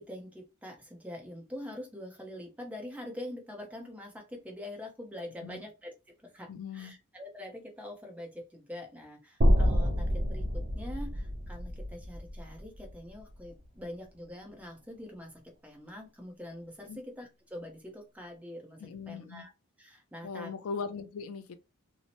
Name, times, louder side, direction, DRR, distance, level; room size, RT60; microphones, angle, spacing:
voice 1, 0.0-5.9 6.2-19.5 19.8-20.5, left 1 dB, 5° right, 0.6 m, -44 dB
voice 2, 6.5-6.9 16.8-17.0 18.8-19.4 20.2-21.6, left 5 dB, 70° left, 0.4 m, -39 dB
sound 1, 9.4-13.6, equal, 45° right, 0.7 m, -28 dB
2.7 x 2.0 x 2.9 m
head